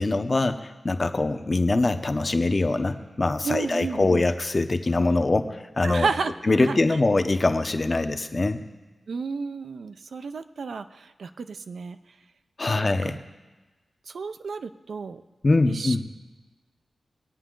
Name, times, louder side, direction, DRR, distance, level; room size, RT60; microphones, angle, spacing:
voice 1, 0.0-6.1 6.5-8.6 12.6-13.2 15.4-16.0, left 2 dB, 30° left, 9 dB, 0.7 m, -23 dB
voice 2, 3.4-4.2 5.8-6.3 6.6-7.0 9.1-12.2 12.7-13.2 14.1-15.2 15.7-16.0, right 5 dB, 70° right, 9 dB, 0.5 m, -32 dB
21.5 x 9.1 x 3.8 m, 1.2 s
wide cardioid pair, 130°, 0 cm